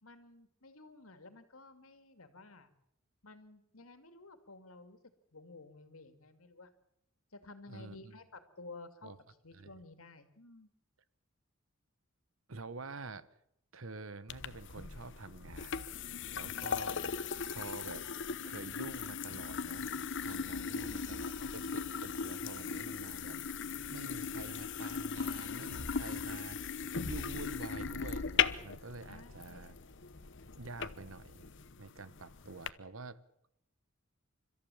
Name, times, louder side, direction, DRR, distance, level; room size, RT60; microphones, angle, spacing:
voice 1, 0.0-2.7 3.2-5.0 5.3-6.7 7.3-9.1 9.4-10.7 20.6-21.3 29.0-29.7, left 3 dB, 90° left, 2.7 m, -53 dB
voice 2, 7.7-8.1 9.0-9.2 9.5-9.8 12.5-13.3 13.7-15.9 16.3-18.0 18.4-19.9 20.2-23.4 23.9-29.7 30.5-31.4 31.8-33.2, right 3 dB, 70° right, 1.2 m, -48 dB
sound 1, 14.3-32.7, left 6 dB, 60° left, 0.9 m, -38 dB
30.0 x 14.0 x 7.2 m
head